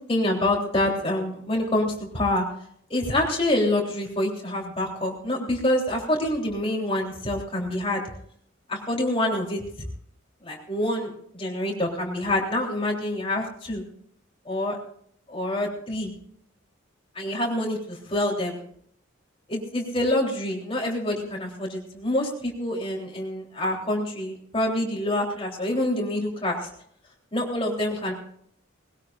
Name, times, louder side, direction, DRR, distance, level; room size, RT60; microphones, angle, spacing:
voice 1, 0.1-2.4 2.9-8.0 8.7-9.6 10.4-13.9 14.5-14.8 15.3-16.1 17.2-18.6 19.5-26.6 27.3-28.1, left 1 dB, 25° left, -1 dB, 3.5 m, -26 dB
20.5 x 17.0 x 2.5 m, 0.66 s
head